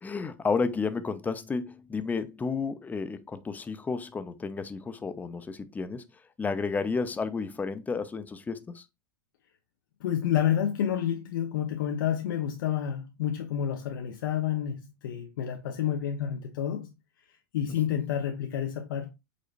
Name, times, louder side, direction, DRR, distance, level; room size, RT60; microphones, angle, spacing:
voice 1, 0.0-6.0 6.4-8.8, left 4 dB, 15° left, 0.6 m, -32 dB
voice 2, 10.0-16.9 17.5-19.1, left 10 dB, 75° left, 0.7 m, -29 dB
5.2 x 3.7 x 2.4 m
hypercardioid pair, 110°, 11 cm